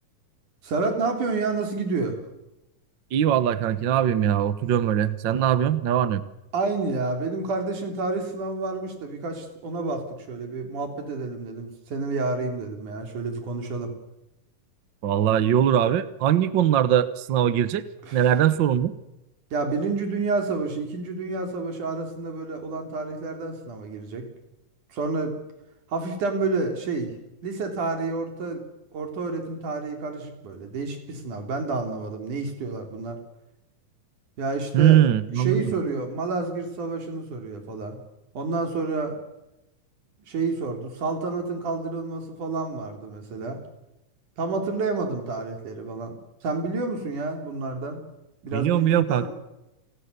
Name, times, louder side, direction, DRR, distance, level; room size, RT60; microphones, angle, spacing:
voice 1, 0.6-2.2 6.5-13.9 18.0-18.3 19.5-24.3 24.9-25.3 25.9-27.1 27.4-28.6 28.9-33.2 34.4-35.0 35.3-38.0 38.3-39.2 40.3-43.6 44.4-46.1 46.4-48.0 48.4-49.3, right 3 dB, 65° right, 5 dB, 4.9 m, -29 dB
voice 2, 3.1-6.2 15.0-17.8 18.1-18.9 34.7-35.7 48.5-49.3, right 10 dB, 85° right, 14 dB, 1.0 m, -21 dB
30.0 x 19.0 x 6.8 m, 0.93 s
omnidirectional pair, 3.8 m